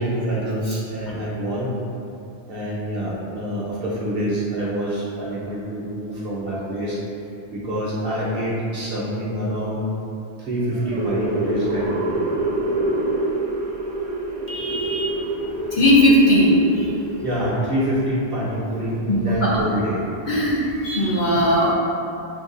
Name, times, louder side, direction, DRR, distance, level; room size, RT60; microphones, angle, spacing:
voice 1, 0.0-1.7 2.5-7.0 7.5-9.8 10.4-12.3 17.2-20.1, right 1 dB, 60° right, -7 dB, 1.1 m, -26 dB
sound 1, 10.7-18.0, right 2 dB, 40° right, 0.5 m, -26 dB
voice 2, 14.5-15.1 15.7-16.9 19.1-19.6 20.3-21.7, equal, 50° left, -6 dB, 0.7 m, -18 dB
6.7 x 2.5 x 2.5 m, 2.7 s
omnidirectional pair, 1.1 m